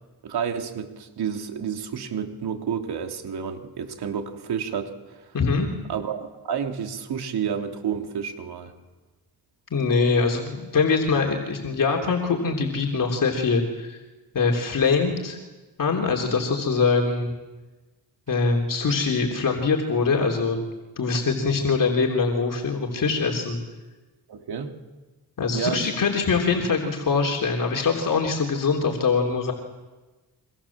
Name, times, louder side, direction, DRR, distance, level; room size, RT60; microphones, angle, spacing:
voice 1, 0.2-4.9 5.2-5.3 5.9-8.7 24.3-24.7 25.5-25.9, right 7 dB, 75° right, 5 dB, 2.9 m, -30 dB
voice 2, 5.3-5.7 9.7-14.0 14.3-15.4 15.8-17.3 18.3-20.6 21.0-23.6 25.4-29.5, left 4 dB, 55° left, 0 dB, 3.5 m, -23 dB
28.5 x 25.5 x 7.4 m, 1.2 s
cardioid pair, 100°, 39 cm